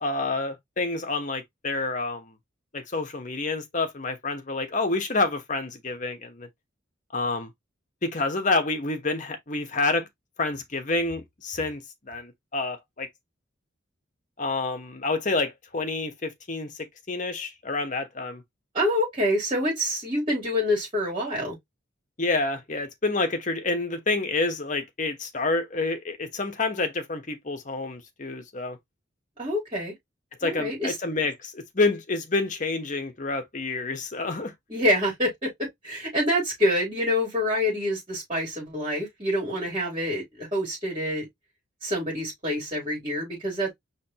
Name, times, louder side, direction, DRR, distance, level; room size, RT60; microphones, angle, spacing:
voice 1, 0.0-2.3 2.7-6.5 7.1-7.5 8.0-10.1 10.4-13.1 14.4-16.7 17.1-18.4 22.2-28.8 30.4-34.5, left 3 dB, 40° left, 1.2 m, -28 dB
voice 2, 18.7-21.6 29.4-29.9 30.4-30.9 34.7-41.3 41.8-43.7, left 1 dB, 30° right, 3.6 m, -26 dB
5.2 x 3.3 x 2.9 m
head